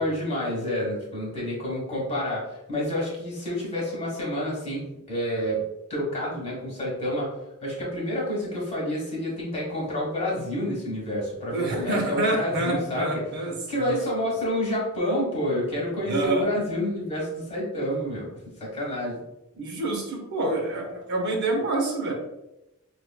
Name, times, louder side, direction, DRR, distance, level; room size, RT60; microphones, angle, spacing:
voice 1, 0.0-5.6 5.9-13.0 13.7-19.2, left 1 dB, 30° left, -4 dB, 1.3 m, -29 dB
voice 2, 11.5-14.0 16.0-16.5 19.6-22.1, right 2 dB, 55° right, 0 dB, 0.8 m, -27 dB
4.7 x 2.5 x 2.2 m, 0.91 s
head